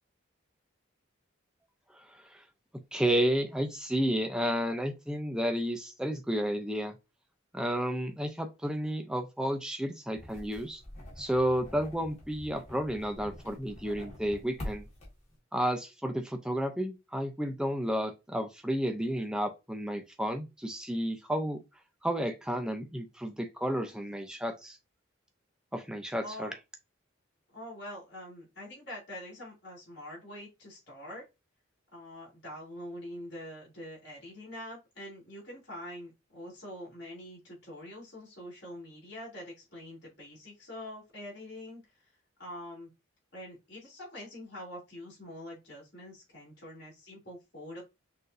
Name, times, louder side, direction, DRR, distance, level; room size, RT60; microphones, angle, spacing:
voice 1, 2.1-2.4 2.9-6.9 7.5-10.8 11.2-14.8 15.5-21.6 22.0-24.8 25.7-26.5, equal, 5° right, 0.5 m, -31 dB
sound 1, 10.1-15.4, left 1 dB, 35° left, 1.8 m, -45 dB
voice 2, 26.2-26.6 27.5-31.2 31.9-41.8 42.4-42.9 43.3-47.8, left 1 dB, 55° left, 2.8 m, -45 dB
6.0 x 2.7 x 2.6 m
head